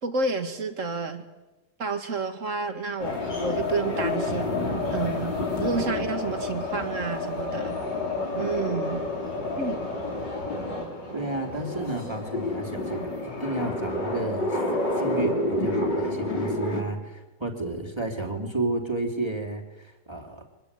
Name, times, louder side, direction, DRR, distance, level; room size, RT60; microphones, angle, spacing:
voice 1, 0.0-1.2 1.8-4.6 4.9-7.8 8.3-9.0 9.6-9.9, right 4 dB, 45° right, 7 dB, 2.3 m, -30 dB
sound 1, 3.0-16.8, left 2 dB, 70° left, 4.4 m, -29 dB
voice 2, 11.1-14.6 15.0-20.4, right 2 dB, 15° right, 2 dB, 3.0 m, -32 dB
24.0 x 20.5 x 8.3 m, 1.1 s
omnidirectional pair, 2.0 m